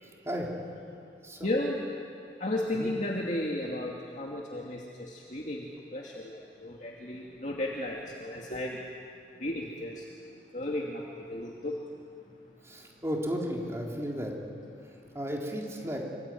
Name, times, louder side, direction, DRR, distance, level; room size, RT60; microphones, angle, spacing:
voice 1, 1.4-1.8 2.4-8.8 9.4-10.0 10.5-11.8, left 1 dB, 40° left, -2 dB, 2.5 m, -34 dB
voice 2, 12.6-14.3 15.1-16.0, equal, 15° right, -1 dB, 3.9 m, -34 dB
26.0 x 25.0 x 9.3 m, 2.4 s
head